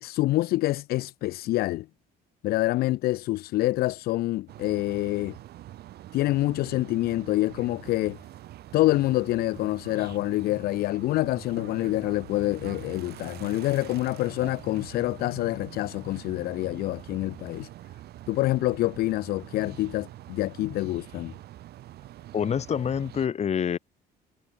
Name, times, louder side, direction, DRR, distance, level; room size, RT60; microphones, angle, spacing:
voice 1, 0.0-1.9 2.4-5.4 6.1-8.2 8.7-17.7 18.3-21.3, left 17 dB, 65° left, 0.4 m, -26 dB
sound 1, 4.5-23.3, right 14 dB, 70° right, 6.5 m, -45 dB
voice 2, 22.3-23.8, left 8 dB, 40° left, 1.6 m, -26 dB
cardioid pair, 110°, 17 cm